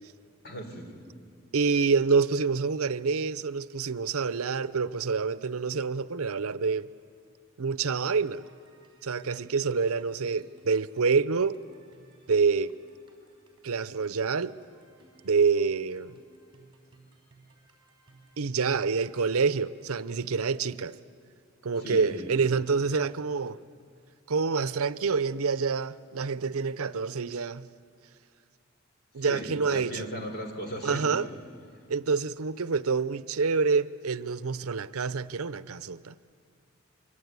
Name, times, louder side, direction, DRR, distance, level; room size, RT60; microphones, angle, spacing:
voice 1, 0.4-1.1 10.2-10.4 21.8-22.3 29.2-31.3, equal, 50° left, 3.7 m, -38 dB
voice 2, 1.5-6.9 7.6-8.4 9.0-11.6 12.3-12.7 13.6-14.5 15.2-16.2 18.4-21.0 21.6-23.6 24.3-27.6 29.1-30.1 30.8-31.3 31.9-36.1, right 5 dB, 85° right, 0.7 m, -27 dB
sound 1, 7.7-20.0, right 2 dB, 25° right, 4.7 m, -60 dB
24.5 x 24.0 x 9.6 m
head